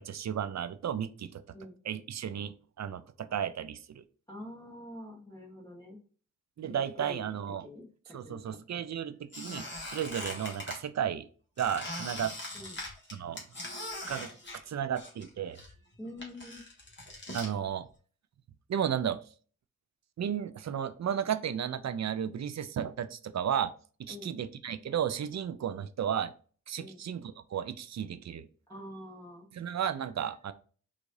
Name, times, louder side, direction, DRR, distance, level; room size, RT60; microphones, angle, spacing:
voice 1, 0.0-1.4 1.8-4.0 6.6-7.7 8.1-11.3 11.6-12.3 13.1-13.4 14.1-14.3 14.7-15.6 17.3-17.9 18.7-19.2 20.2-23.7 24.0-26.3 26.7-28.5 29.5-30.5, right 9 dB, 55° right, 12 dB, 0.4 m, -33 dB
voice 2, 4.3-6.0 6.6-8.6 12.5-12.8 16.0-16.6 24.1-24.4 26.8-27.0 28.7-29.5, left 1 dB, 10° left, -3 dB, 1.1 m, -46 dB
Squeak, 9.3-10.8 11.6-15.3 15.5-17.5, left 1 dB, 35° left, 1.6 m, -41 dB
4.7 x 2.5 x 2.6 m, 0.41 s
cardioid pair, 65°, 33 cm